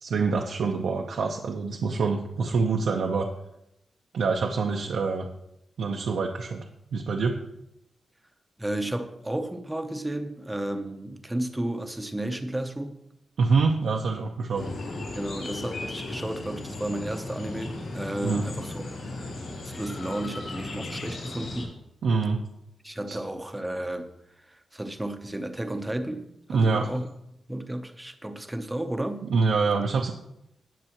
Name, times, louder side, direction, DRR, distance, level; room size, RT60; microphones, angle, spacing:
voice 1, 0.0-3.3 4.1-5.3 5.8-6.6 6.9-7.3 13.4-14.7 18.2-18.4 22.0-22.4 23.1-23.2 26.5-26.9 29.2-30.1, right 4 dB, 75° right, 0 dB, 0.8 m, -25 dB
voice 2, 8.6-13.0 15.0-19.3 19.6-21.8 22.8-24.1 24.5-27.1 27.5-29.3, right 1 dB, 10° right, 7 dB, 0.7 m, -33 dB
sound 1, 14.5-21.6, left 2 dB, 80° left, 4.7 m, -36 dB
18.0 x 6.7 x 3.0 m, 0.83 s
wide cardioid pair, 170°, 0 cm